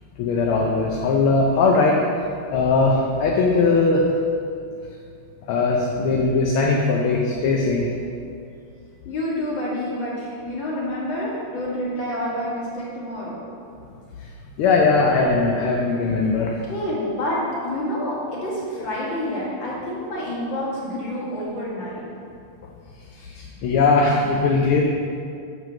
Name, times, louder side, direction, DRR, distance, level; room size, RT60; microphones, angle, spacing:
voice 1, 0.2-2.0 2.5-4.1 5.5-7.9 14.2-14.3 14.6-16.5 23.1-24.8, left 3 dB, 80° left, -1 dB, 1.6 m, -19 dB
voice 2, 9.0-13.4 16.6-22.0, left 1 dB, 60° left, -6 dB, 2.6 m, -28 dB
7.1 x 5.7 x 5.8 m, 2.4 s
omnidirectional pair, 2.4 m